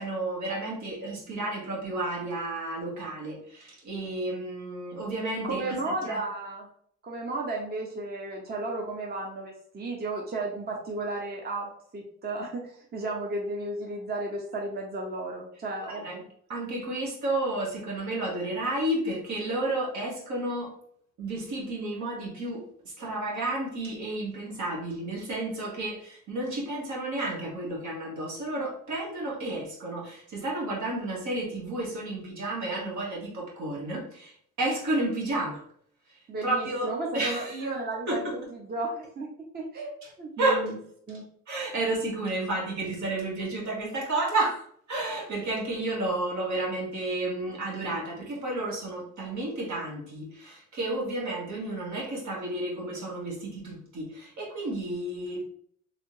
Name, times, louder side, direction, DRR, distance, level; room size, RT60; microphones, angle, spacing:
voice 1, 0.0-6.2 15.9-16.2 16.5-20.7 21.2-35.6 36.1-37.7 38.1-38.5 40.0-40.1 40.4-40.6 41.5-55.4, right 2 dB, 70° right, -2 dB, 1.4 m, -31 dB
voice 2, 5.4-6.7 7.0-16.1 36.3-39.3 39.5-39.9 40.2-40.8 41.1-41.2, right 2 dB, 30° right, -1 dB, 0.8 m, -34 dB
3.2 x 2.8 x 3.0 m, 0.62 s
cardioid pair, 90°, 30 cm